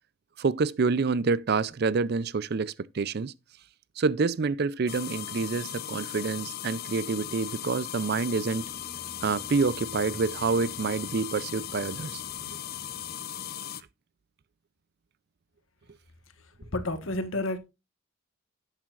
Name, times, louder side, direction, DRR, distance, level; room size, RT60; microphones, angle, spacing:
voice 1, 0.4-3.3 4.0-8.7 9.2-12.2, right 4 dB, 50° right, 0.4 m, -27 dB
sound 1, 4.9-13.8, left 11 dB, 50° left, 0.6 m, -38 dB
sound 2, 8.5-13.5, equal, 25° left, 5.0 m, -53 dB
voice 2, 16.7-17.6, left 2 dB, 75° left, 1.4 m, -30 dB
11.0 x 8.9 x 2.5 m
head